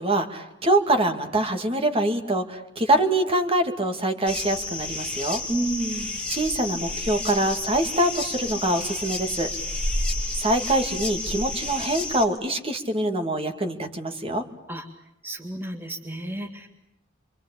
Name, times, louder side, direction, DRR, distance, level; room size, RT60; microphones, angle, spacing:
voice 1, 0.0-5.4 6.3-9.5 10.3-14.4, right 1 dB, 30° right, 6 dB, 2.5 m, -24 dB
sound 1, 4.3-12.3, left 2 dB, 5° left, 3.1 m, -30 dB
voice 2, 5.5-6.2 14.7-14.9 15.2-16.7, right 1 dB, 10° right, 2 dB, 2.0 m, -30 dB
28.0 x 24.5 x 8.6 m, 0.81 s
head